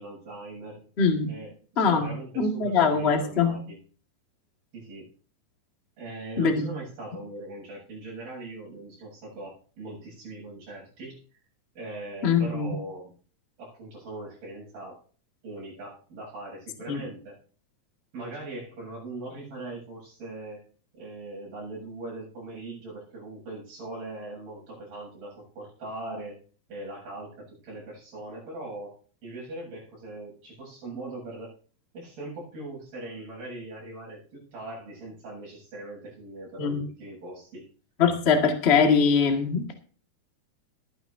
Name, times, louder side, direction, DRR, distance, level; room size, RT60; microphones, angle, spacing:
voice 1, 0.0-0.9 1.3-3.8 4.7-5.1 6.0-11.2 11.7-13.1 13.6-15.0 15.4-17.4 18.1-20.6 20.9-26.4 26.7-29.0 29.2-31.5 31.9-37.7, right 2 dB, 80° right, -4 dB, 9.6 m, -40 dB
voice 2, 1.0-1.3 1.8-2.1 2.4-3.6 6.4-6.7 12.2-12.7 16.9-17.0 36.6-36.8 38.0-39.7, left 5 dB, 35° left, 3 dB, 1.0 m, -22 dB
20.5 x 10.5 x 2.7 m, 0.41 s
omnidirectional pair, 4.2 m